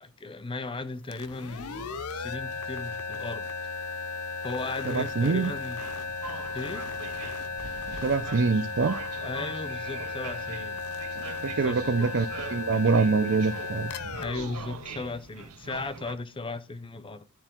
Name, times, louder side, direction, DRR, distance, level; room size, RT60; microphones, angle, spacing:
voice 1, 0.0-3.5 4.4-5.8 6.5-6.8 9.2-10.8 11.5-12.0 14.2-17.2, left 3 dB, 25° left, 0.6 m, -36 dB
sound 1, 1.0-15.7, left 4 dB, 80° left, 0.8 m, -36 dB
voice 2, 4.9-5.5 8.0-9.0 11.1-14.2, right 4 dB, 55° right, 0.6 m, -25 dB
sound 2, 5.8-16.1, right 5 dB, 90° right, 1.0 m, -43 dB
12.0 x 4.4 x 4.5 m
head